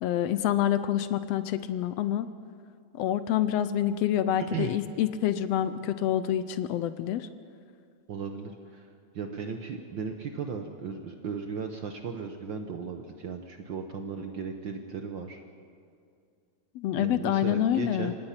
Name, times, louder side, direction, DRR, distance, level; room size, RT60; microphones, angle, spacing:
voice 1, 0.0-2.3 2.9-7.3 16.7-18.1, left 11 dB, 75° left, 13 dB, 1.5 m, -27 dB
voice 2, 4.4-4.7 8.1-15.4 17.0-18.1, right 6 dB, 75° right, 5 dB, 1.1 m, -36 dB
26.0 x 18.5 x 5.8 m, 2.3 s
omnidirectional pair, 3.4 m